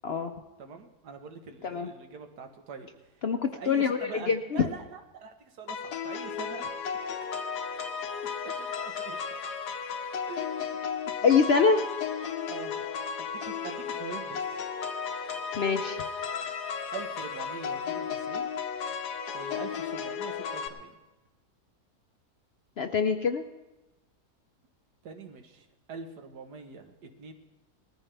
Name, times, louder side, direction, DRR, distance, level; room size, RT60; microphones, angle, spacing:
voice 1, 0.6-2.9 3.1-3.2 3.5-6.7 8.2-9.2 10.3-10.8 12.5-12.9 13.2-14.6 16.9-18.5 19.3-21.0 25.0-26.9 27.2-27.3, right 5 dB, 90° right, 5 dB, 1.7 m, -44 dB
voice 2, 3.2-4.6 11.2-11.8 15.6-16.0 22.8-23.4, left 5 dB, 60° left, 6 dB, 0.6 m, -24 dB
sound 1, 5.7-20.7, left 6 dB, 85° left, 1.5 m, -34 dB
19.5 x 14.0 x 3.4 m, 1.1 s
omnidirectional pair, 1.7 m